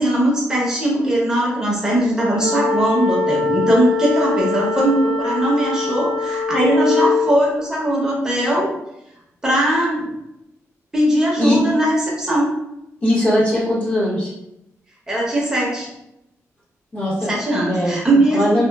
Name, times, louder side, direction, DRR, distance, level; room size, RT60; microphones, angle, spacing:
voice 1, 0.0-8.7 9.4-10.1 10.9-12.5 15.1-15.9 17.3-18.7, right 1 dB, 10° right, -4 dB, 0.9 m, -19 dB
sound 1, 2.4-7.3, left 4 dB, 90° left, 0.9 m, -22 dB
voice 2, 13.0-14.3 16.9-17.3 17.7-18.0 18.3-18.7, left 1 dB, 25° left, -7 dB, 1.0 m, -19 dB
2.9 x 2.1 x 2.3 m, 0.86 s
cardioid pair, 105°, 6 cm